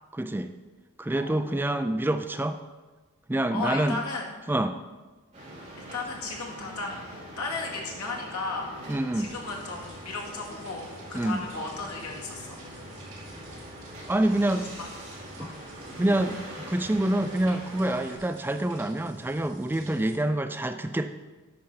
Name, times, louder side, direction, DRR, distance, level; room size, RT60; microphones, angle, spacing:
voice 1, 0.1-0.5 1.0-2.6 3.3-4.0 4.5-4.8 8.9-9.3 11.1-11.4 14.1-14.7 15.4-15.5 16.0-21.1, right 1 dB, 10° right, 9 dB, 0.3 m, -26 dB
voice 2, 1.1-1.4 3.5-4.3 5.8-8.7 9.1-12.6 14.5-14.9 15.4-15.5, left 3 dB, 85° left, -2 dB, 2.2 m, -35 dB
sound 1, 5.3-18.2, right 1 dB, 30° right, 3.2 m, -43 dB
sound 2, 9.2-20.1, right 2 dB, 60° right, 3.4 m, -50 dB
10.0 x 6.5 x 5.6 m, 1.2 s
head